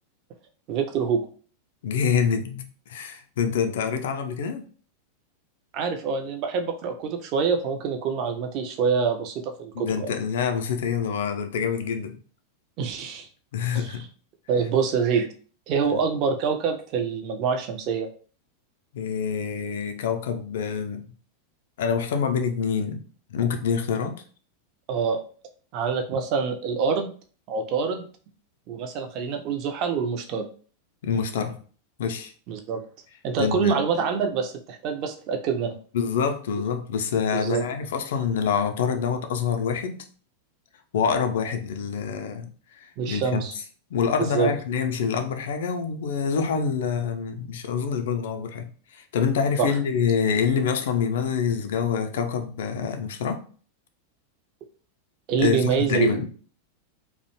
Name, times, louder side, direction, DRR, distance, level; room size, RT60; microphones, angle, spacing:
voice 1, 0.7-1.2 5.7-10.1 12.8-13.3 13.7-14.0 14.5-15.3 15.7-18.1 24.9-25.2 25.7-27.1 27.5-28.1 28.7-30.5 32.5-32.8 33.2-35.8 37.3-37.6 43.0-43.5 44.2-44.5 49.6-49.7 55.3-56.2, right 6 dB, 40° right, 0.4 m, -26 dB
voice 2, 1.8-4.6 9.8-12.2 13.5-14.0 18.9-21.0 21.8-23.0 23.3-24.2 31.0-31.6 32.0-32.3 33.4-33.8 35.9-40.0 40.9-42.5 42.7-43.4 43.9-53.4 55.4-56.3, left 6 dB, 60° left, 0.4 m, -26 dB
2.5 x 2.1 x 2.8 m
figure-of-eight pair, 90°, 0 cm